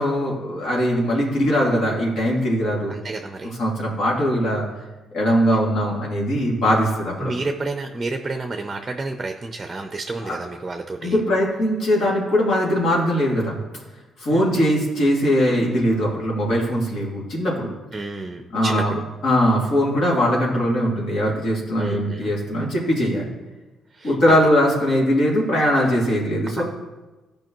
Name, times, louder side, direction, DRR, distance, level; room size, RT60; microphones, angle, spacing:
voice 1, 0.0-2.9 3.4-4.6 5.1-7.3 10.2-10.4 11.0-13.6 14.2-17.7 18.5-19.0 19.2-23.3 24.0-26.6, equal, 65° left, -3 dB, 2.6 m, -21 dB
voice 2, 2.9-3.6 7.2-11.2 14.3-14.7 17.9-19.0 21.8-22.3 23.9-24.4 26.6-26.7, right 3 dB, 20° right, 5 dB, 0.6 m, -30 dB
14.0 x 5.2 x 3.1 m, 1.2 s
cardioid pair, 90°, 0 cm